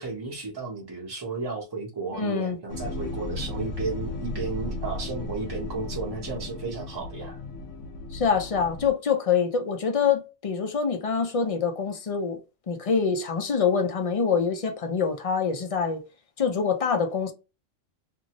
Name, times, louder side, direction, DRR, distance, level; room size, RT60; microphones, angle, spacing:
voice 1, 0.0-7.4, right 4 dB, 20° right, 0.8 m, -33 dB
voice 2, 2.1-2.6 8.1-12.4 12.7-16.0 16.4-17.3, left 6 dB, 45° left, 0.4 m, -25 dB
sound 1, 2.7-8.9, left 2 dB, 75° left, 1.0 m, -35 dB
2.6 x 2.6 x 2.9 m
omnidirectional pair, 1.3 m